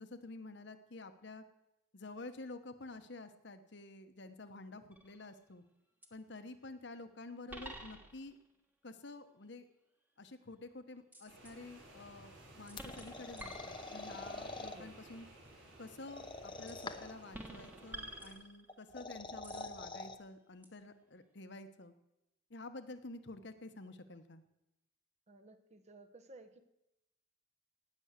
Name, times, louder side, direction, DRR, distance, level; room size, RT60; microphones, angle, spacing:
voice 1, 0.0-1.4 1.9-5.6 6.1-8.4 8.8-9.7 10.2-15.3 15.8-21.9 22.5-24.4, left 2 dB, 60° left, 9 dB, 1.1 m, -50 dB
sound 1, 4.9-5.3 6.0-6.1 7.5-8.4 11.1-11.6 12.7-14.3 16.7-17.0 17.3-18.9 19.4-19.7 20.6-20.7, right 1 dB, 10° right, 1.3 m, -50 dB
sound 2, 11.3-18.3, right 1 dB, 80° right, 4.4 m, -56 dB
sound 3, 12.8-14.8 16.1-17.2 18.7-20.2, left 3 dB, 25° left, 0.8 m, -45 dB
voice 2, 25.3-26.6, right 2 dB, 35° right, 7 dB, 1.0 m, -56 dB
18.0 x 6.3 x 8.1 m, 0.90 s
head